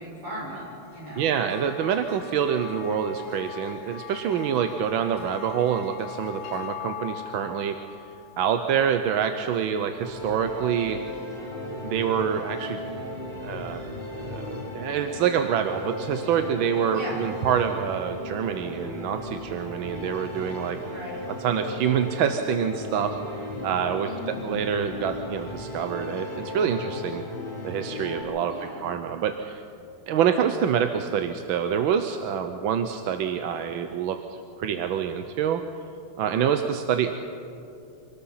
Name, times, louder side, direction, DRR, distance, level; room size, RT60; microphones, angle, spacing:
voice 1, 0.0-1.3 16.9-17.2 20.8-21.2 24.0-24.6 28.5-28.9, equal, 45° right, -5 dB, 7.6 m, -37 dB
sound 1, 0.9-9.5, left 11 dB, 80° left, 1.9 m, -41 dB
voice 2, 1.1-7.8 8.4-11.0 11.8-12.8 13.4-13.8 14.2-20.8 21.4-23.2 23.6-24.1 24.4-27.2 27.6-28.5 28.8-29.6 30.1-35.6 36.2-37.1, right 8 dB, 70° right, 7 dB, 1.5 m, -26 dB
sound 2, 10.0-28.2, left 1 dB, 10° left, 5.9 m, -36 dB
25.5 x 19.0 x 5.7 m, 2.6 s
omnidirectional pair, 2.3 m